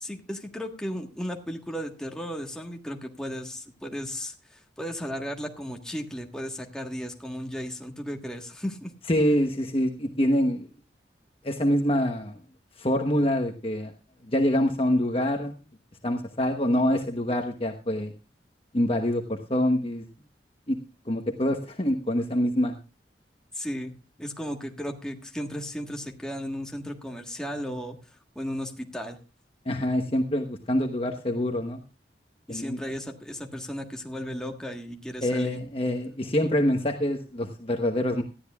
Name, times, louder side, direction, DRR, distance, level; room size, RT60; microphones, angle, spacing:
voice 1, 0.0-8.9 23.5-23.9 24.2-29.2 32.5-35.6, equal, 5° left, 2 dB, 1.5 m, -35 dB
voice 2, 9.1-10.7 11.4-12.3 12.8-13.9 14.3-15.6 16.0-18.1 18.7-20.1 20.7-20.8 21.0-22.8 29.7-31.8 32.5-32.8 35.2-38.2, left 1 dB, 30° left, 4 dB, 1.1 m, -25 dB
18.5 x 13.0 x 2.4 m, 0.31 s
head